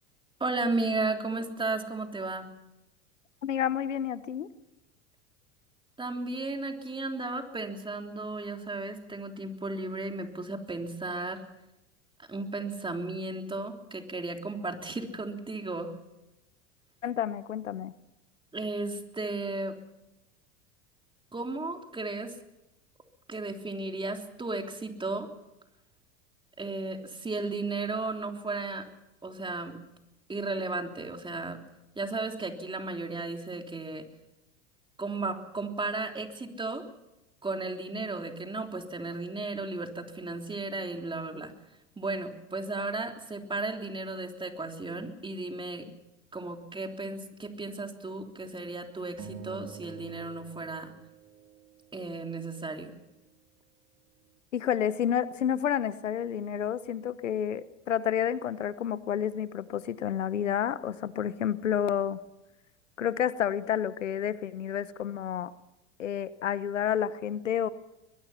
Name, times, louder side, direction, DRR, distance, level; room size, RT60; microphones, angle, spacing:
voice 1, 0.4-2.5 6.0-11.4 12.3-15.9 18.5-19.8 21.3-22.3 23.3-25.3 26.6-28.9 29.2-29.8 30.3-31.6 31.9-34.1 35.0-36.8 37.4-41.5 42.0-45.9 46.3-50.9 51.9-52.9, right 3 dB, 15° right, 4 dB, 3.4 m, -34 dB
voice 2, 3.4-4.5 17.0-17.9 54.5-62.2 63.0-65.5 66.0-67.7, left 9 dB, 90° left, 16 dB, 1.1 m, -30 dB
sound 1, 49.2-51.8, right 6 dB, 40° right, 3.5 m, -46 dB
22.5 x 22.5 x 5.8 m, 0.94 s
hypercardioid pair, 90°, 36 cm